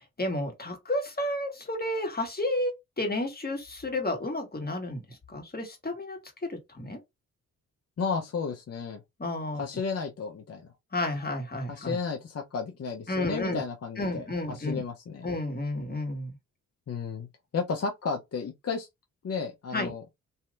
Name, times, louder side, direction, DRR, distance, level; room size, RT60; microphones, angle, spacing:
voice 1, 0.2-6.2 6.5-7.0 9.2-9.6 10.9-12.0 13.1-13.6 14.0-14.8 15.2-16.4 19.7-19.9, left 1 dB, 25° left, 1.6 m, -31 dB
voice 2, 8.0-9.0 9.6-10.7 11.7-15.3 16.9-17.3 17.5-18.9 19.2-20.0, left 5 dB, 45° left, 0.7 m, -33 dB
3.2 x 2.7 x 2.4 m
supercardioid pair, 40°, 35 cm